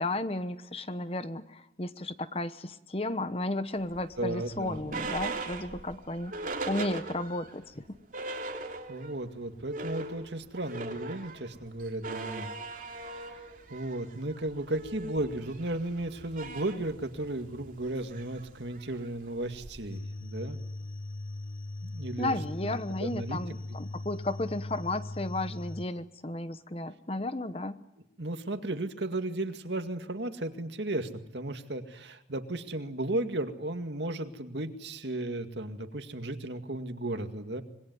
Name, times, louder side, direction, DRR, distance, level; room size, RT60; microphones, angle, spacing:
voice 1, 0.0-8.0 22.2-27.8, left 2 dB, 30° left, 12 dB, 1.0 m, -34 dB
sound 1, 3.9-7.5 7.9-8.0 8.1-9.2 9.5-20.0, right 3 dB, 45° right, 3.1 m, -40 dB
voice 2, 4.2-4.9 8.9-13.4 13.7-20.6 21.8-22.3 22.6-22.7 23.0-23.4 28.2-37.6, right 1 dB, 75° right, 7 dB, 2.1 m, -35 dB
sound 2, 19.9-25.9, left 2 dB, 50° left, 1.4 m, -39 dB
26.0 x 21.0 x 9.5 m, 0.87 s
head